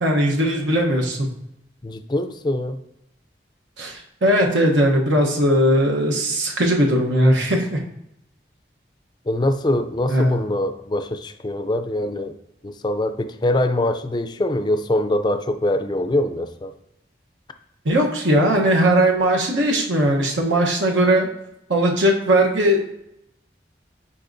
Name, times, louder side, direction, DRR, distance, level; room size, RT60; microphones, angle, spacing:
voice 1, 0.0-1.3 3.8-7.8 10.1-10.4 17.8-21.3 21.7-22.8, right 1 dB, 90° right, 0 dB, 1.0 m, -19 dB
voice 2, 1.8-2.8 9.3-12.4 12.6-16.7, left 1 dB, 25° left, 9 dB, 0.4 m, -23 dB
9.7 x 4.3 x 2.6 m, 0.82 s
head